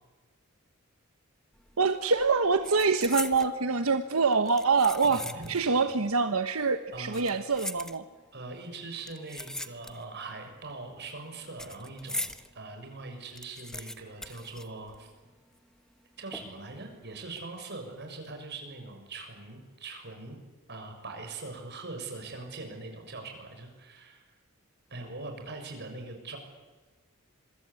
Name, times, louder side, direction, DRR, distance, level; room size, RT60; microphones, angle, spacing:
sound 1, 1.6-1.9 2.1-3.6 4.3-5.7 6.0-6.1 6.9-8.4 9.0-10.2 10.5-12.5 12.9-13.0 13.2-15.3 15.5-15.6 16.3-16.8 17.2-17.4, left 1 dB, 5° left, 1.2 m, -40 dB
voice 1, 1.8-5.2 5.5-8.0, right 4 dB, 85° right, 8 dB, 1.2 m, -25 dB
voice 2, 5.0-5.9 6.9-7.3 8.3-15.1 16.2-20.4 20.7-24.3 24.9-26.4, right 3 dB, 55° right, 4 dB, 6.9 m, -42 dB
26.5 x 23.5 x 8.5 m, 1.3 s
head